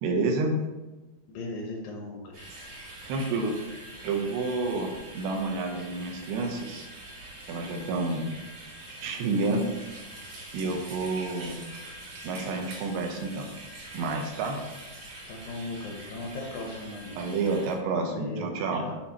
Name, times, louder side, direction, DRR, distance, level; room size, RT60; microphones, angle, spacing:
voice 1, 0.0-0.6 3.1-3.5 4.0-6.9 7.5-8.3 9.0-9.7 10.5-11.6 12.2-13.5 13.9-14.6 17.2-18.8, right 3 dB, 80° right, 3 dB, 2.9 m, -29 dB
voice 2, 1.3-2.5 15.3-17.2 18.0-18.9, left 2 dB, 85° left, 0 dB, 1.7 m, -38 dB
sound 1, 2.3-17.7, right 2 dB, 50° right, 2.1 m, -44 dB
11.0 x 3.9 x 2.9 m, 1.1 s
omnidirectional pair, 5.0 m